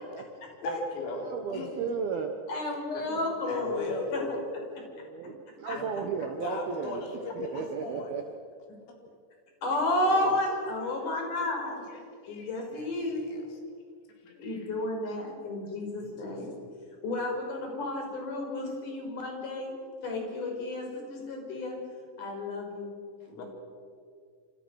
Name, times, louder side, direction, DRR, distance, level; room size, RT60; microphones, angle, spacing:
voice 1, 0.6-1.2 1.5-1.9 2.9-3.2 3.5-4.5 5.7-5.9 6.4-8.2 10.1-10.2 11.6-11.8 12.2-12.9 13.1-13.4 14.4-14.6 16.0-16.1 23.3-23.4, left 2 dB, 90° left, 1 dB, 7.0 m, -38 dB
voice 2, 1.3-2.3 4.9-7.0 7.4-8.2, right 6 dB, 70° right, 5 dB, 2.5 m, -34 dB
voice 3, 2.5-4.2 5.6-5.8 9.6-11.7 12.2-13.2 14.4-16.5 17.0-19.7 20.0-21.8 22.2-23.0 23.3-23.4, left 2 dB, 40° left, 1 dB, 6.4 m, -32 dB
28.0 x 27.0 x 6.4 m, 2.1 s
omnidirectional pair, 5.9 m